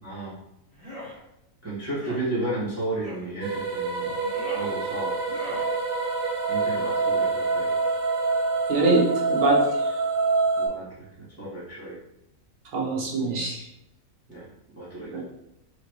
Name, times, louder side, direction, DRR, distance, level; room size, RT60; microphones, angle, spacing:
voice 1, 0.0-0.4 1.6-4.1 4.5-5.1 6.5-7.7 10.6-12.0 14.3-14.5 14.7-15.1, right 2 dB, 10° right, -10 dB, 1.4 m, -33 dB
sound 1, 0.7-1.1 1.9-2.3 3.0-3.3 4.1-4.7 5.2-5.7, left 1 dB, 10° left, 1.3 m, -40 dB
sound 2, 3.4-10.7, right 3 dB, 85° right, 1.3 m, -26 dB
voice 2, 8.7-9.6 12.7-13.6 15.1-15.2, right 3 dB, 70° right, -3 dB, 1.4 m, -23 dB
4.7 x 2.9 x 3.0 m, 0.86 s
omnidirectional pair, 1.5 m